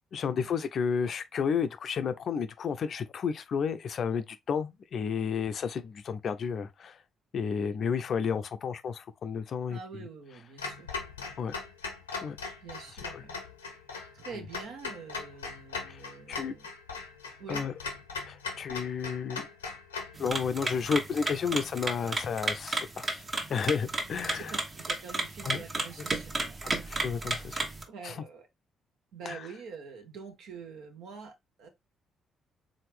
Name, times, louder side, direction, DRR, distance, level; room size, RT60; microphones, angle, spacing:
voice 1, 0.1-7.0 7.3-10.0 11.4-11.6 12.2-12.4 15.9-16.0 16.3-16.6 17.5-17.7 18.3-19.7 20.2-23.2 23.5-24.5 25.4-25.6 26.8-27.6 28.0-28.1 29.3-29.4, left 6 dB, 50° left, 0.5 m, -32 dB
voice 2, 9.7-10.9 12.6-13.4 14.1-16.7 17.4-17.7 24.3-26.9 27.9-28.5 29.1-31.7, right 5 dB, 60° right, 1.0 m, -46 dB
Clock, 10.6-20.2, left 4 dB, 85° left, 0.7 m, -39 dB
sound 1, 20.1-27.8, right 2 dB, 40° right, 1.2 m, -33 dB
4.3 x 3.8 x 3.2 m
figure-of-eight pair, 40°, 0 cm